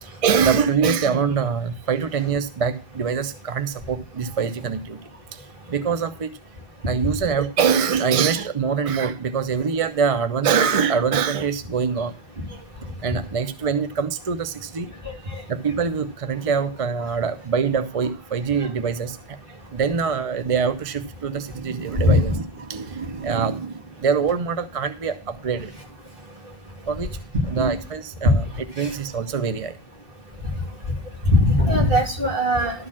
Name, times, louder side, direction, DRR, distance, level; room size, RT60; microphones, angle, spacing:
voice 1, 0.0-5.0 5.3-6.4 6.9-12.1 13.0-14.9 15.5-19.4 19.7-25.7 26.9-27.2 27.5-28.4 28.8-29.8, right 6 dB, 40° right, 10 dB, 0.6 m, -24 dB
voice 2, 31.2-32.9, left 1 dB, 55° right, -1 dB, 2.8 m, -18 dB
12.5 x 4.3 x 7.3 m, 0.36 s
omnidirectional pair, 1.1 m